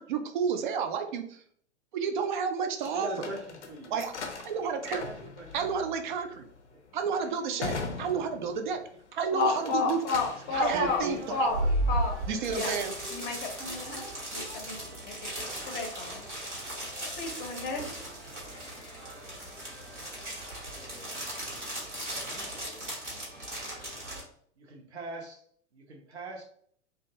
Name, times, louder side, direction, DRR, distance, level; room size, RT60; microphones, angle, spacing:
voice 1, 0.0-1.4 1.9-3.1 3.9-4.1 4.4-5.0 5.5-6.4 6.9-8.8 9.1-10.0 10.5-11.5 12.3-12.9, right 6 dB, 45° right, 6 dB, 0.4 m, -31 dB
sound 1, 2.8-8.9 9.3-10.5, left 4 dB, 80° left, 0.5 m, -40 dB
voice 2, 2.9-4.0 4.9-5.5 6.7-6.8 7.6-8.0 10.4-11.3 21.4-22.9 24.6-25.4 25.7-26.4, right 1 dB, 70° right, 1 dB, 0.7 m, -41 dB
voice 3, 9.3-11.0 11.3-12.2 12.5-12.7 13.1-14.0 14.3-16.3 17.2-18.1, left 5 dB, 25° left, 3 dB, 0.6 m, -32 dB
sound 2, 10.5-24.2, right 1 dB, 90° right, 1.1 m, -36 dB
2.5 x 2.2 x 2.6 m, 0.62 s
figure-of-eight pair, 95°, 35 cm